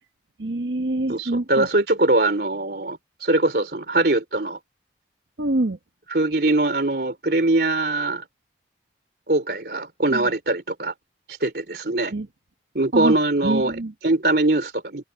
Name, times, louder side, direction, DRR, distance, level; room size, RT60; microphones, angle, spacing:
voice 1, 0.4-1.7 5.4-5.8 10.1-10.2 12.1-12.3 12.9-13.2 13.4-13.9, right 2 dB, 80° right, 1.1 m, -25 dB
voice 2, 1.1-4.6 6.1-8.2 9.3-10.9 11.4-12.1 12.7-13.8 14.0-15.1, right 2 dB, 60° right, 3.3 m, -22 dB
head